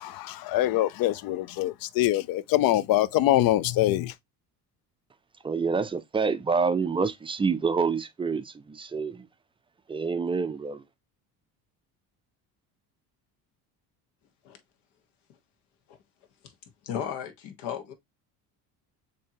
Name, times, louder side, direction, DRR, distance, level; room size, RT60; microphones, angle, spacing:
voice 1, 0.0-4.1, left 14 dB, 60° left, 0.5 m, -24 dB
voice 2, 5.4-9.3 9.9-10.8, right 5 dB, 15° right, 0.3 m, -27 dB
voice 3, 16.8-17.9, left 9 dB, 90° left, 1.4 m, -35 dB
6.8 x 2.8 x 2.8 m
cardioid pair, 125°, 39 cm